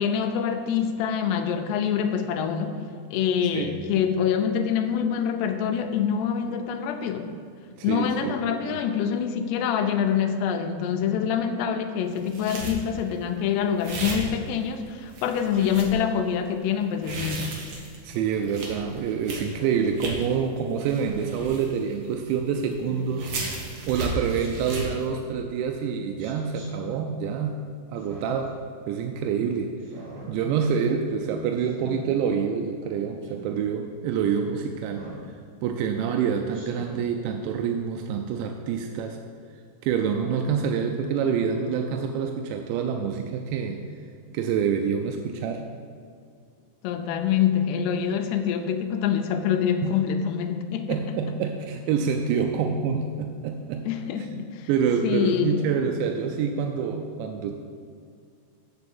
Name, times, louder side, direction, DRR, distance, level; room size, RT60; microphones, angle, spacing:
voice 1, 0.0-2.8 3.1-7.3 7.8-17.5 46.8-51.2 53.9-54.7 55.0-55.7, left 8 dB, 80° left, 6 dB, 2.7 m, -25 dB
voice 2, 7.8-8.8 18.0-23.3 23.9-27.6 27.9-28.5 28.9-29.8 30.3-39.2 39.8-43.8 44.3-45.6 49.8-50.0 50.9-53.8 54.3-54.4 54.7-57.6, right 7 dB, 90° right, 4 dB, 2.9 m, -27 dB
sound 1, 12.2-13.1 13.8-14.8 15.1-15.9 16.8-20.3 20.8-22.4 22.7-22.8 23.1-25.0, right 2 dB, 65° right, 1.6 m, -34 dB
Speech synthesizer, 19.4-19.8 20.9-21.4 22.8-23.2 24.3-24.9 26.2-26.7 28.0-28.5 29.8-30.3 31.6-32.0 33.2-33.6 34.9-35.3 36.5-37.0, right 3 dB, 50° right, 2.0 m, -43 dB
8.1 x 6.2 x 7.0 m, 2.2 s
omnidirectional pair, 5.1 m